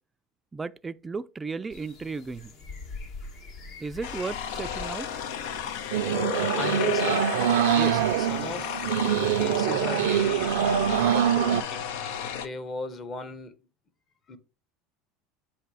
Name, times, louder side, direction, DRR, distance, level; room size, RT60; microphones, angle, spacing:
voice 1, 0.5-2.5 3.8-5.1, right 4 dB, 20° right, 0.4 m, -34 dB
sound 1, 1.7-9.6, left 3 dB, 60° left, 1.6 m, -46 dB
sound 2, 4.0-12.5, left 8 dB, 75° left, 0.7 m, -32 dB
sound 3, 5.9-11.6, right 10 dB, 85° right, 0.5 m, -24 dB
voice 2, 6.6-7.3 7.7-10.7 11.0-11.9 12.3-13.5 14.3-14.4, left 3 dB, 35° left, 1.1 m, -37 dB
7.7 x 2.8 x 4.8 m
supercardioid pair, 105°, 0 cm